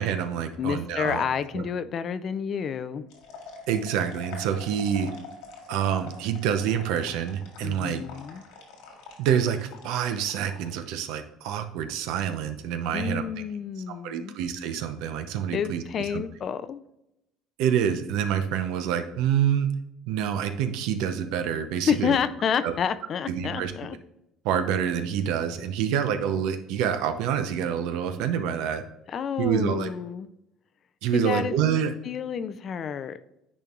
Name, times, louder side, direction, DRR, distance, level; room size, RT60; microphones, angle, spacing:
voice 1, 0.0-1.2 1.5-1.6 3.7-5.1 5.7-8.0 9.2-13.2 14.0-15.8 16.1-16.2 17.6-19.7 20.1-22.2 22.6-22.7 23.3-24.0 24.4-28.8 29.4-29.9 31.0-31.9, right 8 dB, 80° right, 9 dB, 0.7 m, -27 dB
voice 2, 0.6-3.0 7.6-8.4 12.9-14.3 15.5-16.8 21.8-24.0 29.1-30.3 31.1-31.5 32.0-33.3, left 7 dB, 40° left, 13 dB, 0.4 m, -29 dB
sound 1, 3.1-10.7, left 4 dB, 85° left, 2.0 m, -45 dB
10.0 x 4.4 x 2.4 m, 0.87 s
cardioid pair, 120°, 0 cm